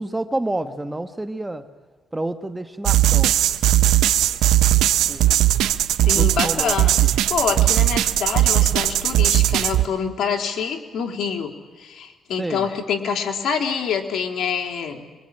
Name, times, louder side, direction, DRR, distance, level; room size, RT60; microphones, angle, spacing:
voice 1, 0.0-1.7 2.1-3.4 5.0-5.2 6.1-7.1 7.5-7.6 12.4-12.7, right 2 dB, 10° right, 8 dB, 1.6 m, -29 dB
sound 1, 2.8-9.8, right 13 dB, 90° right, 1.1 m, -18 dB
voice 2, 6.0-6.9 7.3-11.5 11.8-15.1, left 6 dB, 65° left, 4 dB, 3.6 m, -26 dB
25.5 x 23.5 x 9.1 m, 1.3 s
cardioid pair, 90°, 0 cm